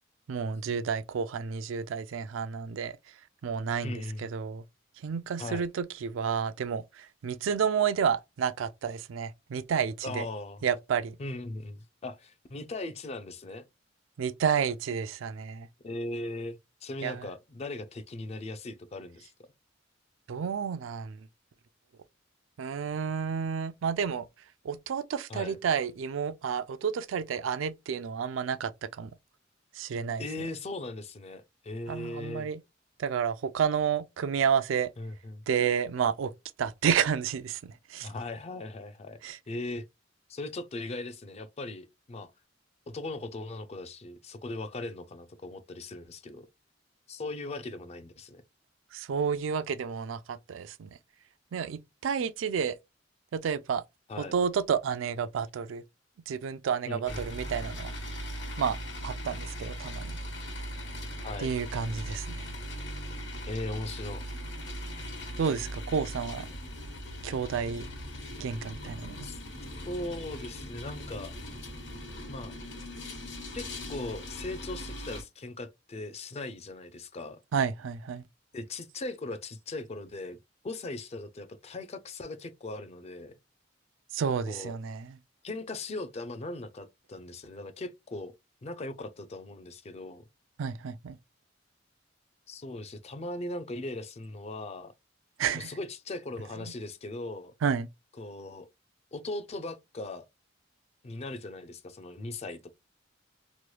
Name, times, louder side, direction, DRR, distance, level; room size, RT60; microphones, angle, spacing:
voice 1, 0.3-2.9 3.4-4.6 5.0-10.3 10.6-11.2 14.2-15.7 17.0-17.2 20.3-21.2 22.6-24.3 24.6-28.7 29.0-29.1 29.8-30.2 31.9-32.6 33.0-34.9 35.5-36.3 36.6-38.1 39.2-39.4 48.9-50.9 51.5-52.8 53.3-53.8 54.3-55.8 56.3-57.9 58.6-58.8 59.0-60.2 61.4-62.5 65.4-66.5 67.2-67.8 68.4-69.3 77.5-78.2 84.1-85.1 90.6-91.2 95.4-95.7 97.6-97.9, right 7 dB, 80° right, 0.4 m, -30 dB
voice 2, 3.8-4.3 5.4-5.7 10.0-10.6 11.2-13.7 15.8-19.3 25.3-25.6 30.2-32.5 35.0-35.4 38.0-39.2 39.5-39.8 40.3-42.3 42.9-46.5 47.1-48.4 54.1-54.4 56.8-57.3 61.2-61.5 63.5-64.2 69.2-69.4 69.9-71.3 72.3-72.5 73.5-77.4 78.5-80.4 80.6-83.3 84.5-84.7 85.4-88.3 88.6-90.2 92.5-94.9 95.5-97.5 98.2-98.7 99.1-100.3 101.0-102.7, left 2 dB, 35° left, 0.4 m, -39 dB
sound 1, 57.1-75.2, equal, 65° left, 1.2 m, -39 dB
3.0 x 2.2 x 3.0 m
head